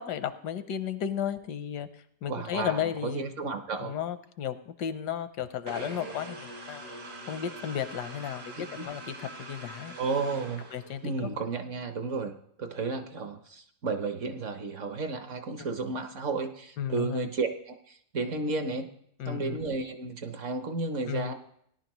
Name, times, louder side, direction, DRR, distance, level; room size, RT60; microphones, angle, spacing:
voice 1, 0.0-3.2 3.8-6.9 7.2-9.9 10.7-11.3 15.6-15.7 16.8-17.3 19.2-19.6 21.1-21.3, left 9 dB, 80° left, 11 dB, 1.3 m, -34 dB
voice 2, 2.3-3.9 8.8-8.9 10.0-10.6 11.0-18.9 19.3-21.3, right 4 dB, 55° right, 7 dB, 1.0 m, -33 dB
sound 1, 5.7-11.2, right 2 dB, 75° right, 2.4 m, -43 dB
17.5 x 11.0 x 3.0 m, 0.68 s
omnidirectional pair, 1.8 m